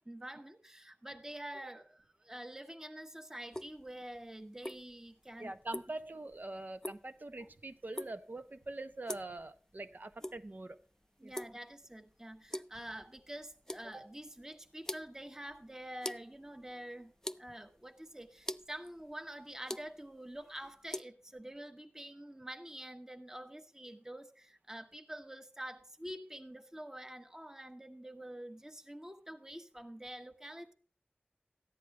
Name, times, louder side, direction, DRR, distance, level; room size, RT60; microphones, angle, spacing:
voice 1, 0.0-5.5 11.2-30.7, right 1 dB, 15° right, 5 dB, 1.2 m, -47 dB
sound 1, 3.4-21.0, left 1 dB, 15° left, 0.4 m, -46 dB
voice 2, 5.4-10.8 11.2-11.3, right 2 dB, 55° right, 9 dB, 1.0 m, -44 dB
14.0 x 10.0 x 3.3 m, 0.42 s
wide cardioid pair, 60°, 4 cm